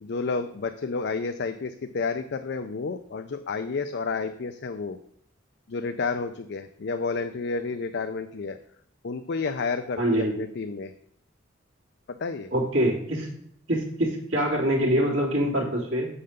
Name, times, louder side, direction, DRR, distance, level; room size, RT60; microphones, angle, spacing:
voice 1, 0.0-5.0 5.7-8.6 9.0-10.9 12.1-12.5, left 4 dB, 60° left, 8 dB, 0.5 m, -30 dB
voice 2, 10.0-10.4 12.5-13.3 13.7-16.1, right 1 dB, 75° right, -4 dB, 3.2 m, -24 dB
6.7 x 5.6 x 6.6 m, 0.68 s
head